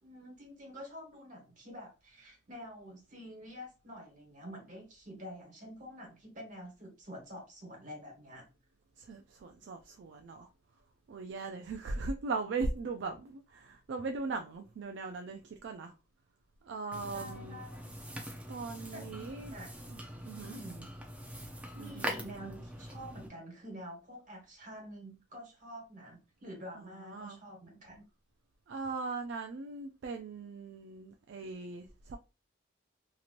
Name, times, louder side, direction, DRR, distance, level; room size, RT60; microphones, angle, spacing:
voice 1, 0.0-8.4 17.1-17.9 18.9-19.2 19.5-19.7 20.4-20.9 21.7-28.0, equal, 40° right, 1.3 m, -48 dB
voice 2, 9.0-10.5 11.1-15.9 16.6-17.6 18.5-19.6 19.9-20.0 20.3-20.6 21.8-22.1 26.8-27.4 28.7-32.2, right 3 dB, 65° right, 0.3 m, -39 dB
sound 1, 16.9-23.3, equal, 5° right, 0.5 m, -43 dB
2.9 x 2.9 x 2.4 m
head